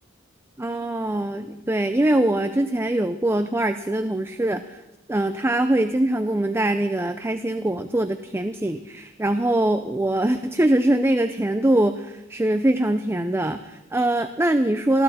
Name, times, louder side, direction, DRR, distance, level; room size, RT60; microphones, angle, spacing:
voice 1, 0.6-4.8 5.1-15.0, right 1 dB, 15° right, 9 dB, 0.5 m, -23 dB
19.5 x 13.5 x 4.2 m, 1.0 s
head